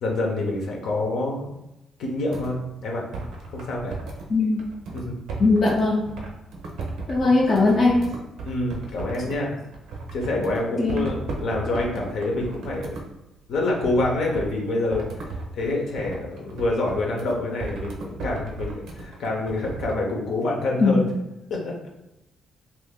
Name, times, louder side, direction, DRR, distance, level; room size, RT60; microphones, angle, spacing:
voice 1, 0.0-1.5 2.0-3.0 3.5-4.0 4.9-5.2 7.2-7.3 8.4-9.6 10.1-13.0 13.5-21.1 21.5-21.9, left 2 dB, 75° left, -1 dB, 0.8 m, -27 dB
sound 1, 2.3-2.5 3.1-4.3 4.6-9.4 9.7-10.6 10.9-13.1 13.5-14.5 14.9-20.0, right 3 dB, 75° right, 0.6 m, -35 dB
voice 2, 4.3-4.6 5.4-6.1 7.1-8.2 10.8-11.1 20.8-21.0, left 3 dB, 45° left, -2 dB, 0.5 m, -19 dB
2.6 x 2.5 x 3.6 m, 0.90 s
cardioid pair, 90°, 0 cm